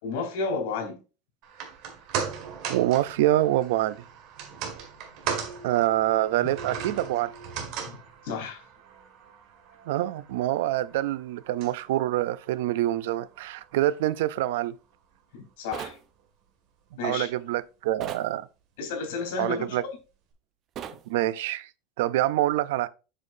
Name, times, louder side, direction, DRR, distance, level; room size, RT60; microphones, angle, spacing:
voice 1, 0.0-1.0 7.8-8.0 8.2-8.6 15.6-16.0 17.0-17.3 18.8-19.8, left 4 dB, 80° left, 3.6 m, -31 dB
sound 1, 1.4-13.8 14.1-14.2, right 7 dB, 50° right, 1.9 m, -38 dB
voice 2, 2.7-4.0 5.6-7.3 9.9-14.8 17.0-18.5 19.4-19.8 21.1-21.7 22.0-22.9, right 14 dB, 85° right, 0.5 m, -26 dB
sound 2, 15.7-16.0 18.0-18.3 20.8-21.0, right 9 dB, 35° right, 0.6 m, -37 dB
7.6 x 6.4 x 2.6 m
supercardioid pair, 155°, 0 cm